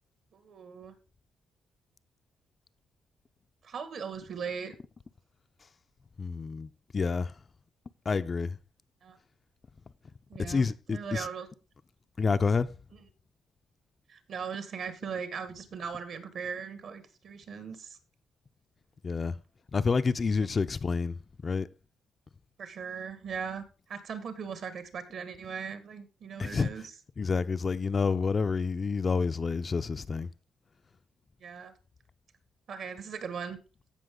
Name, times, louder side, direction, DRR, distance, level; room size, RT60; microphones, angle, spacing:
voice 1, 0.3-0.9 3.6-4.7 9.0-9.2 10.3-11.5 14.1-18.0 22.6-26.8 31.4-31.7 32.7-33.6, right 6 dB, 60° right, 1.8 m, -39 dB
voice 2, 6.2-7.4 8.1-8.6 10.4-11.3 12.2-12.8 19.0-19.4 19.7-21.7 26.4-26.7 27.2-30.3, left 4 dB, 30° left, 0.4 m, -29 dB
15.5 x 5.8 x 3.7 m
cardioid pair, 120°, 0 cm